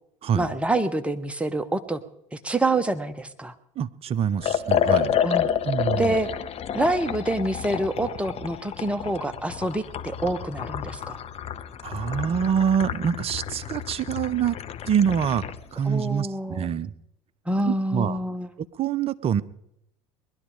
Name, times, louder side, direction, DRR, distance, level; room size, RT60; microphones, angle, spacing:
voice 1, 0.3-2.0 2.3-3.5 5.2-5.5 5.9-6.3 6.7-11.2 15.9-16.7 17.5-18.5, right 2 dB, 5° right, 8 dB, 1.3 m, -26 dB
voice 2, 3.8-5.1 5.6-6.1 11.8-14.6 14.9-15.4 15.7-16.9 17.6-18.2 18.6-19.4, right 8 dB, 35° right, 14 dB, 0.7 m, -25 dB
Liquid, 4.4-15.6, left 9 dB, 35° left, 0.9 m, -29 dB
21.0 x 11.5 x 5.0 m, 0.79 s
hypercardioid pair, 75°, 17 cm